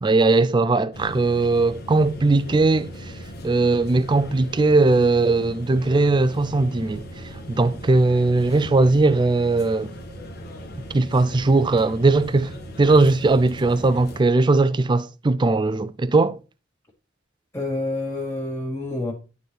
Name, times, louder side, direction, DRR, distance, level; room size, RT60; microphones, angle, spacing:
voice 1, 0.0-3.1 3.4-7.1 7.5-9.9 10.9-16.4, right 3 dB, 20° right, 0.4 m, -19 dB
sound 1, 0.9-14.2, equal, 50° left, 1.2 m, -38 dB
voice 2, 17.5-19.1, left 2 dB, 15° left, 1.3 m, -28 dB
11.0 x 4.3 x 3.3 m
head